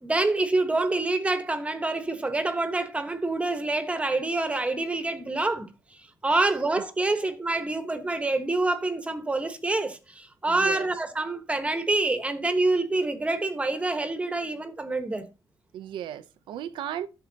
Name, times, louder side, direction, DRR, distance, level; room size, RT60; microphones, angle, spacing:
voice 1, 0.0-5.7 6.2-15.3, right 2 dB, 15° right, 1.2 m, -26 dB
voice 2, 10.5-10.9 15.7-17.1, right 10 dB, 85° right, 0.7 m, -36 dB
12.0 x 7.0 x 2.9 m
cardioid pair, 120°, 8 cm